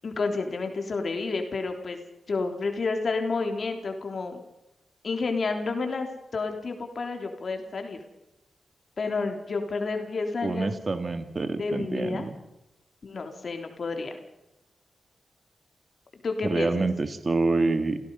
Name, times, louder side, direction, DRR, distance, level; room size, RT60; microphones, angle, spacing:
voice 1, 0.0-2.0 2.3-4.4 5.0-8.0 9.0-10.7 11.6-12.3 13.0-14.2 16.1-16.9, left 3 dB, 60° left, 5 dB, 3.4 m, -30 dB
voice 2, 10.4-12.3 16.4-18.0, right 3 dB, 40° right, 9 dB, 1.7 m, -27 dB
28.5 x 17.0 x 5.5 m, 0.89 s
cardioid pair, 80°, 0 cm